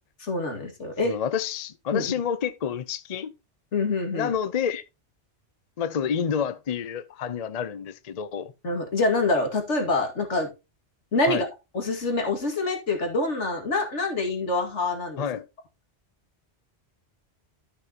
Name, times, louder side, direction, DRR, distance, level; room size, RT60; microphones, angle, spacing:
voice 1, 0.3-1.2 1.9-2.1 3.7-4.3 8.6-10.5 11.1-11.5 11.7-15.2, left 2 dB, 85° left, 2.4 m, -26 dB
voice 2, 1.1-3.3 4.1-4.8 5.8-8.5 11.3-11.4 15.2-15.4, left 7 dB, 40° left, 0.6 m, -29 dB
12.5 x 6.6 x 2.9 m
omnidirectional pair, 1.2 m